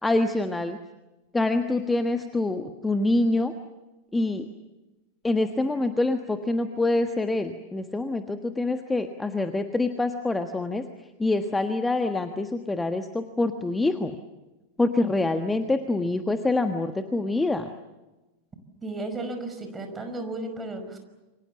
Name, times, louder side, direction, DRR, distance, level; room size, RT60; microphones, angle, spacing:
voice 1, 0.0-0.8 1.3-3.5 4.1-4.5 5.2-10.8 11.2-14.1 14.8-17.7, left 2 dB, 10° left, 8 dB, 1.5 m, -25 dB
voice 2, 18.8-21.0, right 2 dB, 15° right, 5 dB, 5.4 m, -34 dB
28.5 x 25.0 x 7.2 m, 1.1 s
figure-of-eight pair, 90°, 0 cm